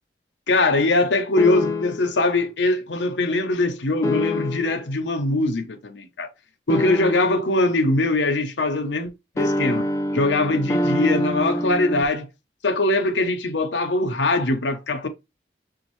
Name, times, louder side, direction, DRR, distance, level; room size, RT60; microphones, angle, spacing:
voice 1, 0.5-6.3 6.7-9.9 10.1-12.3 12.6-15.1, left 2 dB, 85° left, 0.8 m, -22 dB
sound 1, 1.4-2.2 4.0-4.8 6.7-7.5 9.4-12.0, left 1 dB, 15° left, 0.4 m, -25 dB
6.3 x 2.5 x 3.0 m
head